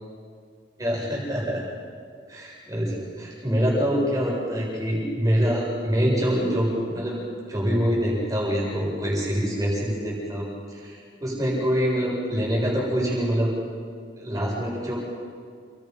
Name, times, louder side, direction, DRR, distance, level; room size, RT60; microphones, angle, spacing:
voice 1, 0.8-1.6 2.3-7.2 7.5-13.5 14.1-14.9, equal, 20° right, -4 dB, 7.4 m, -25 dB
29.5 x 23.0 x 5.7 m, 2.1 s
head